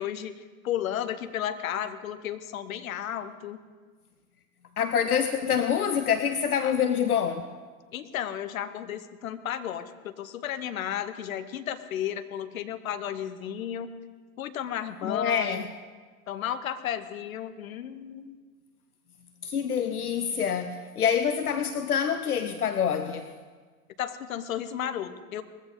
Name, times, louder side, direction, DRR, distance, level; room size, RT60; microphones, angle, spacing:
voice 1, 0.0-3.6 6.6-6.7 7.9-13.9 14.4-15.7 16.3-18.4 24.0-25.4, left 10 dB, 65° left, 11 dB, 1.2 m, -33 dB
voice 2, 4.8-7.4 15.0-15.7 19.4-23.3, left 8 dB, 80° left, 9 dB, 0.9 m, -26 dB
20.0 x 15.0 x 3.9 m, 1.5 s
figure-of-eight pair, 100°, 44 cm